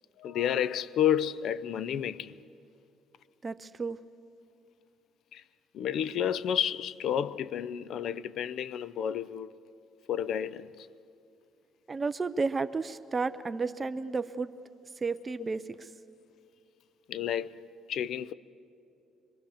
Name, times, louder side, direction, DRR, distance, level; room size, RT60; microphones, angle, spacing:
voice 1, 0.2-2.3 5.3-5.4 5.7-9.5 10.1-10.9 15.4-15.5 17.1-17.6 17.9-18.3, left 9 dB, 60° left, 0.6 m, -31 dB
voice 2, 3.4-4.0 11.9-14.5 15.0-15.9, right 4 dB, 25° right, 0.5 m, -32 dB
25.5 x 22.0 x 7.2 m
cardioid pair, 125°, 0 cm